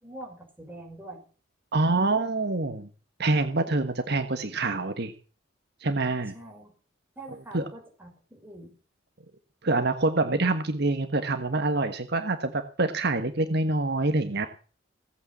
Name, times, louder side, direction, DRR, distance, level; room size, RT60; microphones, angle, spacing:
voice 1, 0.0-1.2 6.3-6.7 7.2-8.7, right 1 dB, 10° right, 1 dB, 5.9 m, -44 dB
voice 2, 1.7-2.9 3.2-5.1 5.8-6.3 7.5-7.6 9.6-14.5, right 2 dB, 60° right, 8 dB, 1.4 m, -26 dB
18.0 x 8.6 x 7.6 m, 0.38 s
head